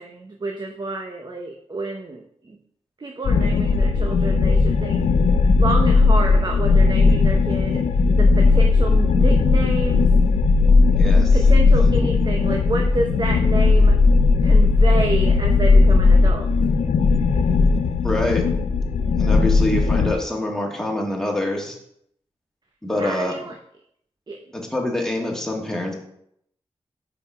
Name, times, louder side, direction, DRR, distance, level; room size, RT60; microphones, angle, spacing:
voice 1, 0.0-2.6 3.0-5.1 5.6-7.8 8.2-10.1 11.3-14.0 14.4-16.5 22.9-23.5 24.3-24.4, right 2 dB, 40° right, 2 dB, 0.7 m, -29 dB
sound 1, 3.2-20.1, left 4 dB, 80° left, 0.4 m, -17 dB
voice 2, 10.9-11.4 12.0-12.1 18.0-18.4 19.2-21.8 22.8-23.3 24.5-26.0, left 1 dB, 5° left, 0 dB, 1.8 m, -25 dB
5.2 x 4.7 x 4.7 m, 0.71 s
cardioid pair, 50°, 11 cm